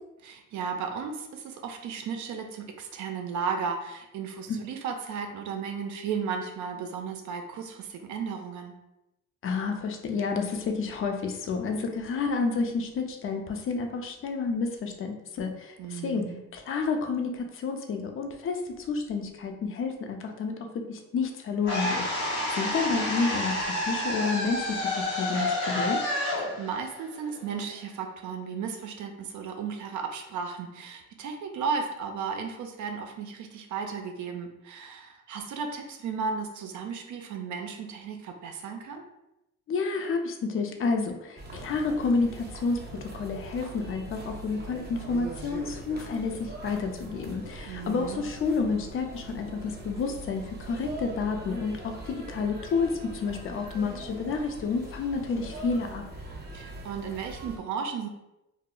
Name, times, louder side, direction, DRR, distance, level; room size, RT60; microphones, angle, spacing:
voice 1, 0.2-8.8 15.8-16.4 26.4-39.0 47.7-48.2 56.5-58.1, right 6 dB, 75° right, 4 dB, 0.5 m, -35 dB
voice 2, 9.4-16.3 16.5-26.0 39.7-56.1, left 4 dB, 45° left, 4 dB, 0.5 m, -30 dB
sound 1, 21.6-27.8, left 1 dB, 85° left, 0.8 m, -29 dB
sound 2, 41.4-57.6, right 2 dB, 35° right, 0.8 m, -42 dB
2.0 x 2.0 x 3.7 m, 0.91 s
cardioid pair, 90°, 30 cm